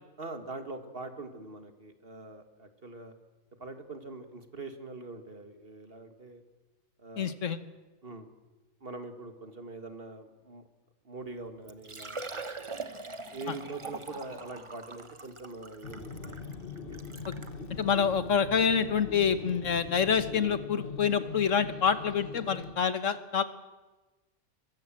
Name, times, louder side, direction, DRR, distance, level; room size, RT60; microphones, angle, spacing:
voice 1, 0.2-3.1 3.6-6.4 7.0-7.4 8.0-8.3 8.8-10.6 11.0-12.4 13.3-16.4, right 3 dB, 45° right, 7 dB, 2.2 m, -43 dB
voice 2, 7.2-7.6 17.7-23.4, left 7 dB, 65° left, 11 dB, 1.5 m, -27 dB
Liquid, 11.2-11.3 11.7-17.6 18.3-18.4 18.8-18.9 20.6-20.7 20.8-20.9, right 3 dB, 25° right, 1.1 m, -42 dB
sound 1, 15.8-22.7, left 4 dB, 40° left, 1.9 m, -41 dB
23.5 x 22.5 x 7.6 m, 1.2 s
omnidirectional pair, 1.4 m